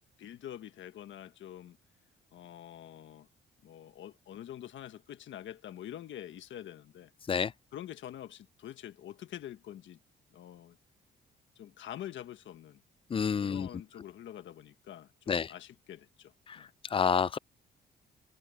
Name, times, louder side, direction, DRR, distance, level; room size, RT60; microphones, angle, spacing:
voice 1, 0.2-1.8 2.3-3.3 3.6-7.1 7.7-10.0 10.3-10.8 11.5-12.8 13.4-16.7, left 11 dB, 70° left, 1.5 m, -46 dB
voice 2, 13.1-13.7 15.3-15.5 16.5-17.4, left 6 dB, 25° left, 0.4 m, -29 dB
cardioid pair, 90°, 20 cm